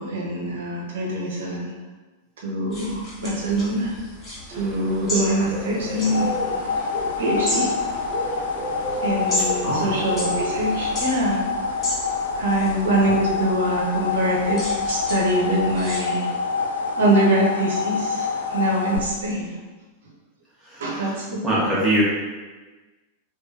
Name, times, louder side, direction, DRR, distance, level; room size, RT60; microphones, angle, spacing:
voice 1, 0.0-1.7 2.4-4.0 4.5-6.3 7.2-7.7 9.0-11.4 12.4-16.3 17.0-19.6 20.8-21.7, right 1 dB, 60° right, -2 dB, 0.9 m, -24 dB
sound 1, 2.7-16.0, equal, 20° left, 1.3 m, -34 dB
Bird, 4.5-11.0, right 1 dB, 30° right, 0.7 m, -34 dB
sound 2, 5.8-19.0, left 5 dB, 65° left, 0.4 m, -27 dB
voice 2, 9.6-10.0 20.6-22.0, right 1 dB, 5° right, -9 dB, 1.5 m, -24 dB
4.6 x 2.5 x 2.8 m, 1.3 s
figure-of-eight pair, 90°, 0 cm